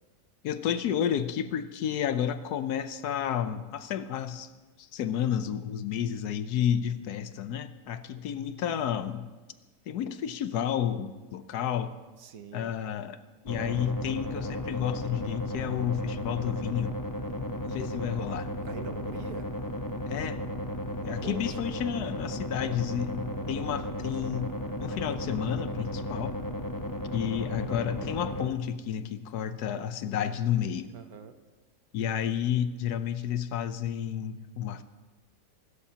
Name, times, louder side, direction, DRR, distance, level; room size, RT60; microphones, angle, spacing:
voice 1, 0.4-4.5 4.8-9.3 9.9-12.0 12.5-13.2 13.4-17.0 17.3-18.5 20.1-20.4 21.0-24.5 24.8-26.4 27.1-30.9 31.9-34.8, left 9 dB, 70° left, 12 dB, 1.2 m, -31 dB
voice 2, 12.2-12.7 18.6-19.5 21.2-21.5 30.9-31.3, right 6 dB, 65° right, 8 dB, 1.3 m, -43 dB
sound 1, 13.5-28.5, left 1 dB, 25° left, 0.5 m, -35 dB
24.5 x 13.0 x 2.9 m, 1.3 s
omnidirectional pair, 1.8 m